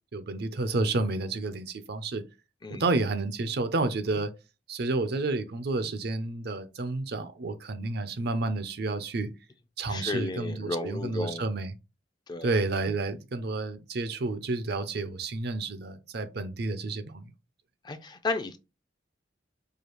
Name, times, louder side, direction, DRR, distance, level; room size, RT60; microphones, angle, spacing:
voice 1, 0.1-2.2 2.8-4.3 4.7-9.3 9.8-11.7 12.4-17.3, right 3 dB, 60° right, 0.5 m, -30 dB
voice 2, 9.9-11.4 12.3-12.6 17.8-18.6, left 2 dB, 25° left, 0.4 m, -33 dB
4.8 x 2.3 x 3.0 m
head